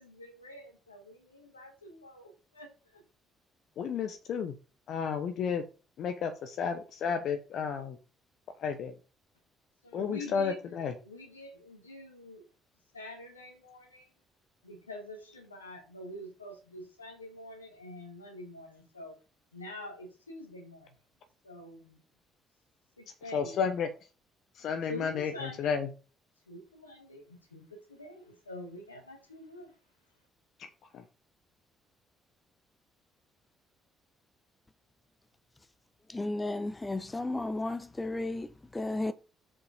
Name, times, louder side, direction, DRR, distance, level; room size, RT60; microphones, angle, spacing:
voice 1, 0.0-3.0 9.8-12.5 12.9-14.1 14.6-19.2 19.5-21.0 21.4-22.0 23.0-23.8 24.9-25.8 26.5-29.8, left 1 dB, 85° left, 1.7 m, -46 dB
voice 2, 3.8-4.5 4.9-5.6 6.0-8.0 8.6-8.9 9.9-10.9 23.3-23.9 24.6-25.9 30.9-31.0, left 6 dB, 55° left, 1.0 m, -32 dB
voice 3, 36.1-39.1, left 2 dB, 20° left, 0.9 m, -34 dB
7.4 x 5.2 x 5.0 m
figure-of-eight pair, 45°, 0 cm